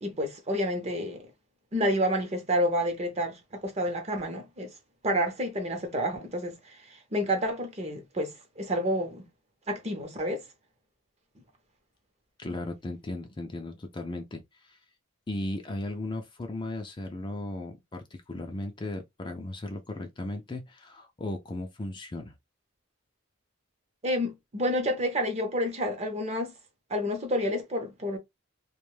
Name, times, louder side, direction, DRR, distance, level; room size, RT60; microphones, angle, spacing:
voice 1, 0.0-1.3 1.7-4.7 5.0-9.3 9.7-10.4 24.0-26.5 26.9-28.2, equal, 30° right, 0.7 m, -29 dB
voice 2, 12.4-14.8 15.3-22.3, left 1 dB, 25° left, 0.4 m, -36 dB
2.4 x 2.2 x 3.1 m
head